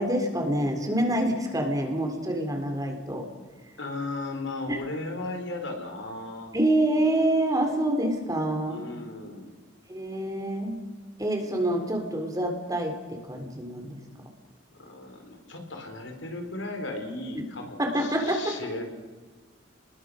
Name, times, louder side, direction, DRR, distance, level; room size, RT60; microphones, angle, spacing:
voice 1, 0.0-3.3 4.7-4.8 6.5-8.9 9.9-10.8 11.2-14.0 17.4-17.5 17.8-18.5, right 1 dB, 20° right, 3 dB, 3.6 m, -27 dB
voice 2, 3.8-6.5 8.7-9.5 14.8-18.8, left 2 dB, 75° left, 4 dB, 4.5 m, -36 dB
28.5 x 21.0 x 6.5 m, 1.4 s
head